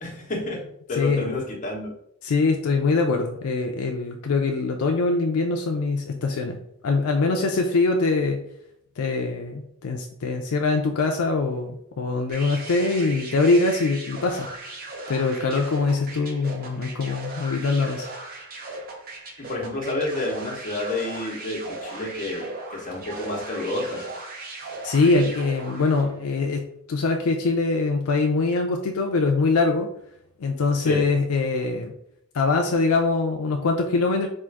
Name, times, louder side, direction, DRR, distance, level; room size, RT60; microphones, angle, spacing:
voice 1, 0.0-1.9 19.4-24.1 30.8-31.0, left 2 dB, 35° left, -1 dB, 1.0 m, -30 dB
voice 2, 0.9-1.3 2.2-6.6 6.8-8.4 9.0-14.5 15.1-18.1 24.8-29.9 30.4-31.9 32.3-34.3, left 3 dB, 70° left, 3 dB, 0.4 m, -23 dB
sound 1, 12.3-26.1, right 2 dB, 45° right, 0.7 m, -38 dB
3.6 x 2.5 x 4.6 m, 0.73 s
head